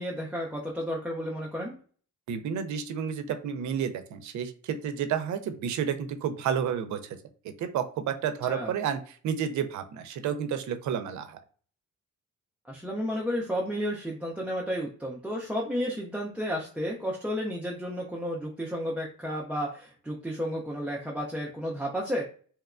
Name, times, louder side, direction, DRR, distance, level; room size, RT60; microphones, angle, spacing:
voice 1, 0.0-1.8 8.4-8.7 12.7-22.2, equal, 5° right, -3 dB, 0.4 m, -32 dB
voice 2, 2.3-7.2 7.6-11.4, right 8 dB, 65° right, 8 dB, 0.5 m, -31 dB
2.9 x 2.2 x 2.4 m, 0.43 s
cardioid pair, 105°, 31 cm